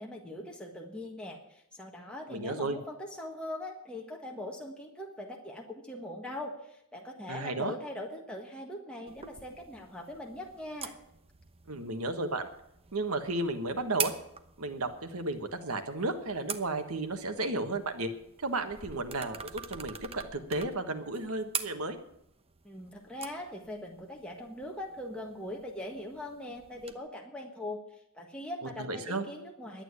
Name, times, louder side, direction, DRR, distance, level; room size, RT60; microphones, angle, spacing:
voice 1, 0.0-10.9 22.6-29.8, left 1 dB, 5° left, -1 dB, 1.5 m, -41 dB
voice 2, 2.3-2.8 7.3-7.7 11.7-12.5 12.9-14.1 14.6-18.1 18.4-22.0 28.8-29.2, right 2 dB, 80° right, 8 dB, 1.4 m, -33 dB
sound 1, 9.1-26.9, right 6 dB, 30° right, 0.9 m, -44 dB
11.5 x 9.0 x 9.6 m, 0.79 s
head